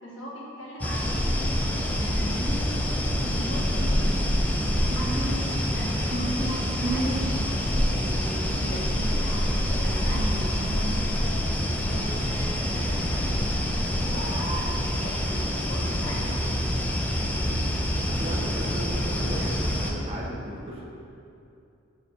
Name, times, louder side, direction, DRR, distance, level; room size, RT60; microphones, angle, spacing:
voice 1, 0.0-2.4 3.2-7.3 7.6-11.3 11.8-13.4 13.7-16.5 18.4-18.5, equal, 70° left, -5 dB, 1.5 m, -40 dB
sound 1, 0.8-19.9, equal, 10° left, 0.5 m, -26 dB
Guitar, 1.0-11.0, right 2 dB, 45° right, 1.6 m, -36 dB
voice 2, 17.4-17.7 18.1-20.8, equal, 30° right, -4 dB, 1.0 m, -36 dB
7.2 x 4.1 x 5.1 m, 2.6 s
head